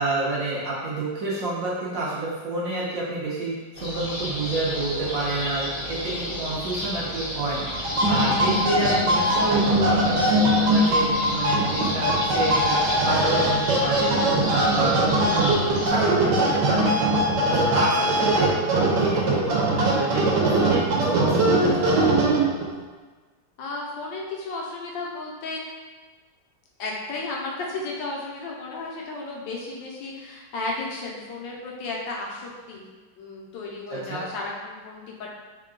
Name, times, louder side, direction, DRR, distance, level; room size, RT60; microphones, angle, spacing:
voice 1, 0.0-14.1 14.5-15.0 15.3-17.0 17.5-20.3 20.6-22.3 33.9-34.2, right 2 dB, 60° right, -6 dB, 1.0 m, -28 dB
sound 1, 3.7-15.9, left 1 dB, 45° left, 0.8 m, -32 dB
sound 2, 7.7-22.7, right 1 dB, 80° right, 1.3 m, -21 dB
voice 2, 23.6-25.6 26.8-32.9 33.2-35.3, left 2 dB, 85° left, -2 dB, 1.4 m, -34 dB
3.6 x 2.3 x 3.7 m, 1.3 s
omnidirectional pair, 1.9 m